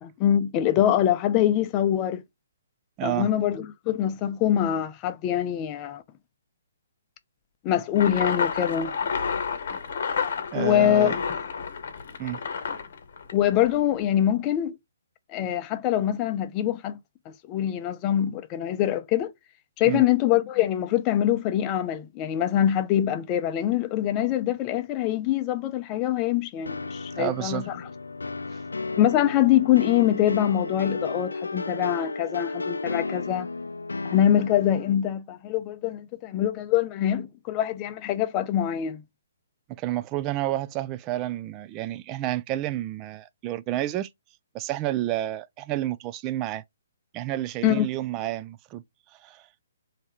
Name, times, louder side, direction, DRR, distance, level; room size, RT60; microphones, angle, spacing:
voice 1, 0.0-2.2 3.0-6.0 7.6-9.0 10.5-11.1 13.3-14.8 15.3-17.0 17.3-19.3 19.8-27.8 29.0-33.5 34.0-39.0 47.6-47.9, left 11 dB, 25° left, 0.5 m, -24 dB
voice 2, 3.0-3.3 10.5-11.2 12.2-12.4 19.8-20.0 27.1-27.7 39.7-44.1 44.5-46.6 47.1-48.8 49.2-49.5, right 14 dB, 25° right, 0.3 m, -30 dB
sound 1, 8.0-13.8, left 6 dB, 55° left, 0.9 m, -30 dB
sound 2, 26.7-34.9, left 3 dB, 80° left, 0.3 m, -33 dB
3.3 x 2.9 x 4.7 m
figure-of-eight pair, 135°, 0 cm